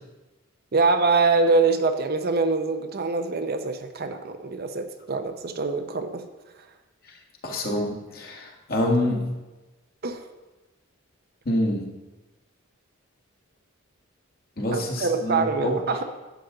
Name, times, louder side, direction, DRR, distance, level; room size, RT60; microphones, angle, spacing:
voice 1, 0.7-6.3 10.0-10.3 14.7-16.1, right 3 dB, 50° right, 8 dB, 0.6 m, -24 dB
voice 2, 7.4-9.3 11.4-11.9 14.6-15.8, left 1 dB, 45° left, 0 dB, 1.7 m, -26 dB
11.0 x 7.9 x 3.8 m, 1.1 s
head